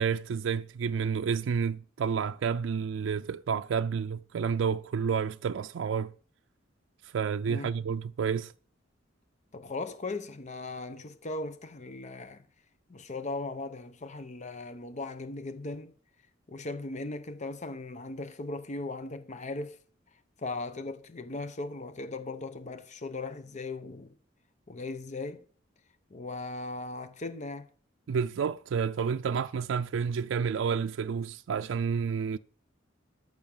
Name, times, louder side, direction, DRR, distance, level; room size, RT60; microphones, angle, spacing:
voice 1, 0.0-6.1 7.0-8.5 28.1-32.4, right 6 dB, 85° right, 0.4 m, -30 dB
voice 2, 9.5-12.4 12.9-15.9 16.5-19.8 20.4-24.1 24.7-25.5 26.1-27.7, left 2 dB, 40° left, 0.8 m, -38 dB
13.5 x 6.1 x 5.4 m
head